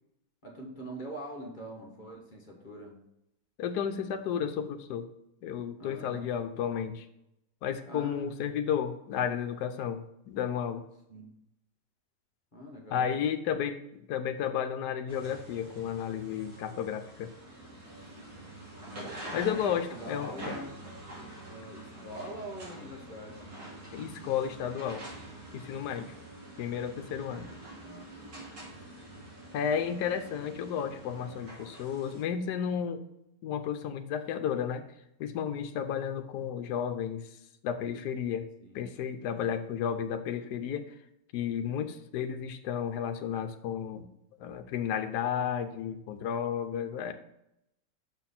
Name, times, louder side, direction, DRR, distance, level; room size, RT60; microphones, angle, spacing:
voice 1, 0.4-3.0 5.8-6.3 7.8-8.3 11.1-11.3 12.5-13.3 19.5-20.9 21.5-23.5 27.8-28.3 31.0-31.4 38.6-38.8, right 1 dB, 30° left, 0 dB, 1.3 m, -44 dB
voice 2, 3.6-5.1 5.4-7.1 7.6-10.8 12.9-17.3 19.3-20.5 23.9-25.0 25.5-26.1 26.6-27.5 29.5-33.0 33.4-34.8 35.2-37.3 37.6-38.5 38.7-40.9 41.3-44.1 44.4-47.1, left 8 dB, 75° left, 8 dB, 1.2 m, -32 dB
sound 1, 15.1-32.2, right 1 dB, 85° right, 3.4 m, -46 dB
6.4 x 5.9 x 4.2 m, 0.83 s
omnidirectional pair, 1.8 m